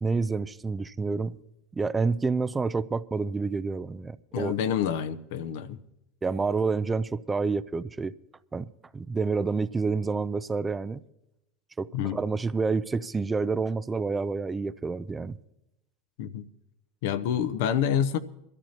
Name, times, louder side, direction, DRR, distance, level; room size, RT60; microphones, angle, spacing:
voice 1, 0.0-1.3 1.8-4.5 6.2-8.1 8.5-8.7 8.9-11.0 11.8-15.4, right 4 dB, 20° right, 0.5 m, -28 dB
voice 2, 4.3-5.8 11.9-12.2 16.2-16.5 17.0-18.2, left 9 dB, 70° left, 0.8 m, -27 dB
22.5 x 13.5 x 2.9 m
hypercardioid pair, 90°, 0 cm